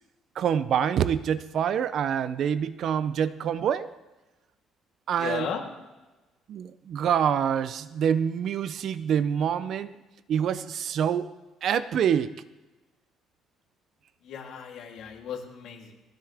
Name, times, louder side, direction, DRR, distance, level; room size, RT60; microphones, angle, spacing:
voice 1, 0.4-3.9 5.1-5.5 6.5-10.0 10.3-11.3 11.6-12.3, right 8 dB, 45° right, 15 dB, 0.5 m, -26 dB
voice 2, 5.2-5.6 14.2-15.9, left 8 dB, 60° left, -1 dB, 3.2 m, -35 dB
20.0 x 17.0 x 3.5 m, 1.1 s
cardioid pair, 175°, 0 cm